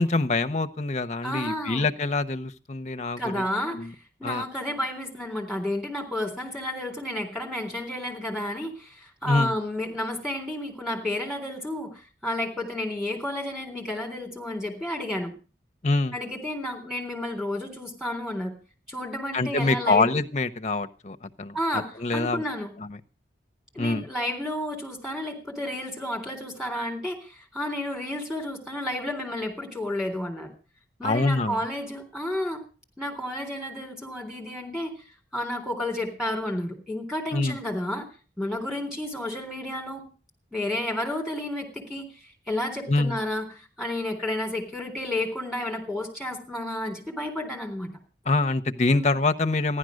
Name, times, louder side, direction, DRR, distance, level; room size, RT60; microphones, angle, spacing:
voice 1, 0.0-3.4 3.7-3.9 4.2-4.4 9.2-9.5 15.8-16.2 19.3-22.4 22.8-23.0 23.8-24.0 31.0-31.6 37.3-37.6 42.9-43.2 48.3-49.8, left 3 dB, 40° left, 9 dB, 0.8 m, -25 dB
voice 2, 1.2-1.9 3.2-3.9 4.2-15.3 16.1-18.5 18.9-20.2 21.5-22.7 23.7-30.5 31.0-32.6 33.0-34.9 35.3-38.1 38.4-40.0 40.5-47.9 48.9-49.1, left 1 dB, 5° right, 0 dB, 3.6 m, -31 dB
15.0 x 11.5 x 6.4 m, 0.36 s
head